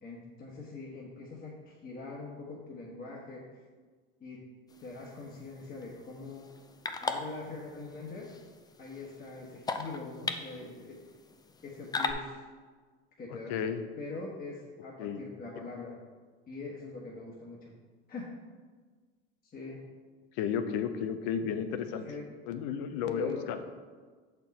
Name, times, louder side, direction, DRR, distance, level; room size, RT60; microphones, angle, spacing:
voice 1, 0.0-3.6 4.2-4.4 4.8-6.4 7.0-8.3 8.8-11.0 11.6-12.4 13.2-13.6 14.0-16.0 16.5-17.7 18.1-18.3 19.4-19.8 22.0-22.3 23.1-23.6, left 3 dB, 30° left, -3 dB, 1.2 m, -43 dB
sound 1, 4.7-12.1, left 4 dB, 15° left, 0.4 m, -40 dB
voice 2, 13.5-13.8 15.0-15.2 20.4-22.0 22.5-23.6, left 7 dB, 70° left, 9 dB, 0.7 m, -32 dB
6.1 x 4.4 x 4.1 m, 1.5 s
supercardioid pair, 90°, 31 cm